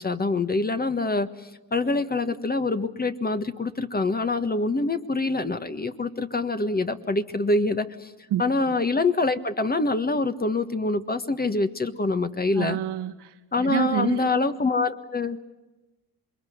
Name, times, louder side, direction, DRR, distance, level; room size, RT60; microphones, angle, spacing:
voice 1, 0.0-8.1 8.4-12.8 13.5-15.4, left 3 dB, 20° left, 9 dB, 1.5 m, -25 dB
voice 2, 12.6-13.3 13.6-14.3, right 10 dB, 70° right, 5 dB, 2.0 m, -27 dB
27.5 x 21.5 x 9.5 m, 1.1 s
supercardioid pair, 75°, 42 cm